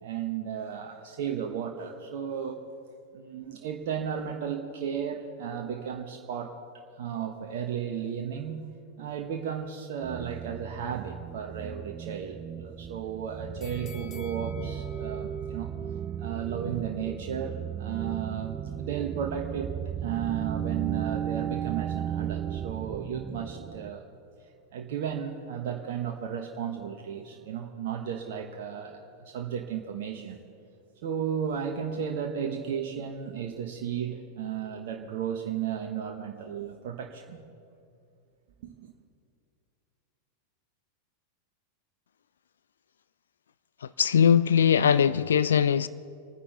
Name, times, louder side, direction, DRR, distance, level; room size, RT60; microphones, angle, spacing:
voice 1, 0.0-2.6 3.1-6.5 7.0-8.7 9.0-15.7 16.2-19.7 20.0-24.1 24.7-30.4 31.0-37.4 38.6-38.9, right 8 dB, 50° right, 1.2 m, -34 dB
sound 1, 10.0-23.9, right 9 dB, 20° right, 0.6 m, -35 dB
sound 2, 13.6-16.7 17.1-17.2, left 6 dB, 30° left, 0.9 m, -52 dB
voice 2, 43.8-45.9, left 8 dB, 65° left, 0.3 m, -21 dB
27.5 x 9.9 x 3.9 m
figure-of-eight pair, 90°, 0 cm